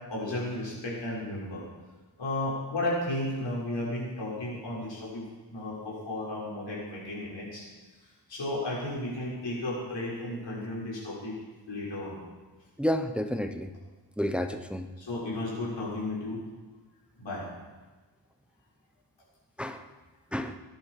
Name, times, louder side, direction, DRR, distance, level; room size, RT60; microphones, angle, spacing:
voice 1, 0.1-1.6 2.2-7.6 8.3-11.3 11.7-12.2 15.0-16.4 17.2-17.5, left 1 dB, 85° left, -6 dB, 6.7 m, -34 dB
voice 2, 12.8-13.7 14.2-14.9 19.6-19.8 20.3-20.5, equal, 5° right, 7 dB, 0.9 m, -30 dB
21.0 x 11.0 x 5.0 m, 1.3 s
wide cardioid pair, 90°, 43 cm